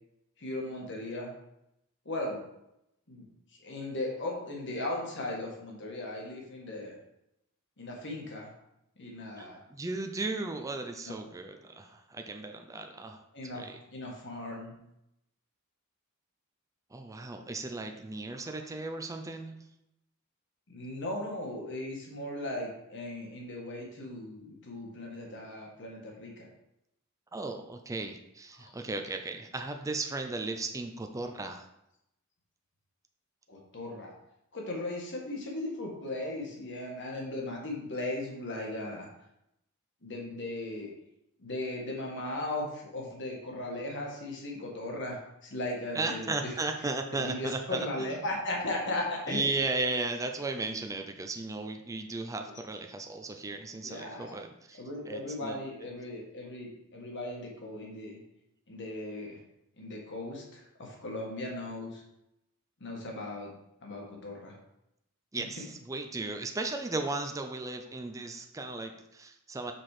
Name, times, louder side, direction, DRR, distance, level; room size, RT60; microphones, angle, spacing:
voice 1, 0.4-1.3 2.0-2.4 3.1-3.3 3.6-6.9 7.8-8.5 9.0-9.6 11.0-11.1 13.3-13.6 13.9-14.7 18.3-18.4 20.7-26.5 28.6-28.7 33.5-34.1 34.5-39.1 40.0-40.9 41.4-46.5 47.1-49.4 53.8-54.4 54.7-58.2 58.7-59.4 59.8-62.0 62.8-63.5 63.8-64.5, left 1 dB, 55° left, 0 dB, 1.6 m, -37 dB
voice 2, 9.4-13.2 13.5-13.8 16.9-19.6 27.3-31.7 45.9-48.2 49.3-55.6 65.3-69.7, right 3 dB, 15° right, 5 dB, 0.5 m, -36 dB
6.0 x 4.4 x 4.9 m, 0.83 s
head